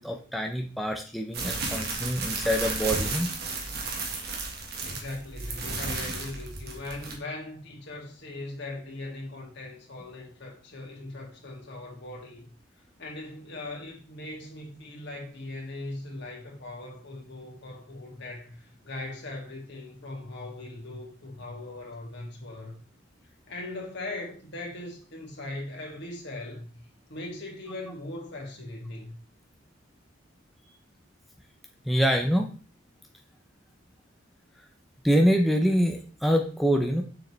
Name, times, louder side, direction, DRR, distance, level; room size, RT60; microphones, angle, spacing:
voice 1, 0.0-3.3 31.9-32.5 35.0-37.0, equal, ahead, 0.7 m, -25 dB
sound 1, 1.3-7.1, right 3 dB, 55° right, 1.7 m, -33 dB
voice 2, 4.8-12.4 13.0-22.8 23.5-26.8 27.1-29.2, left 2 dB, 60° left, 2.4 m, -39 dB
6.8 x 6.4 x 3.3 m
head